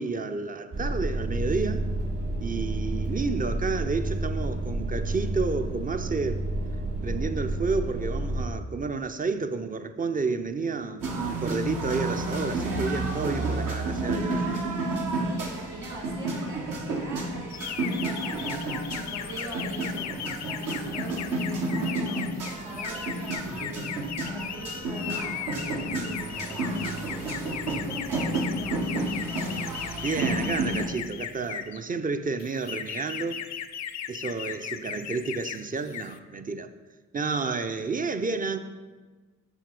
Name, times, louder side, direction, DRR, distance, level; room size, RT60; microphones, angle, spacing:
voice 1, 0.0-1.8 2.4-6.4 7.0-14.4 30.0-33.4 34.1-36.7 37.1-38.6, right 4 dB, 25° right, 0.5 m, -30 dB
sound 1, 0.7-8.5, right 1 dB, 45° right, 1.5 m, -30 dB
sound 2, 11.0-30.9, right 2 dB, 70° right, 1.3 m, -31 dB
voice 2, 15.2-28.8, right 1 dB, 85° right, 2.2 m, -42 dB
sound 3, 17.5-31.8 32.4-35.6 35.9-36.2, left 9 dB, 55° left, 0.5 m, -37 dB
6.4 x 4.2 x 5.2 m
supercardioid pair, 50°, 34 cm